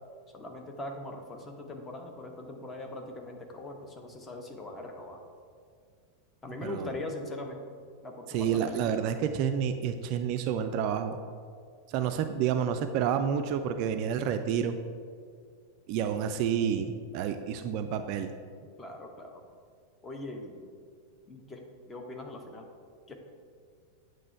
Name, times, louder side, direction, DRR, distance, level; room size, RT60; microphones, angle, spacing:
voice 1, 0.3-5.2 6.4-7.6 8.0-8.9 18.8-19.4 20.0-20.7 21.3-22.7 23.1-23.2, left 2 dB, 20° left, 3 dB, 0.9 m, -41 dB
voice 2, 8.3-11.2 11.9-14.8 15.9-18.3, right 8 dB, 45° right, 8 dB, 0.3 m, -29 dB
8.5 x 3.1 x 5.6 m, 2.1 s
figure-of-eight pair, 90°, 0 cm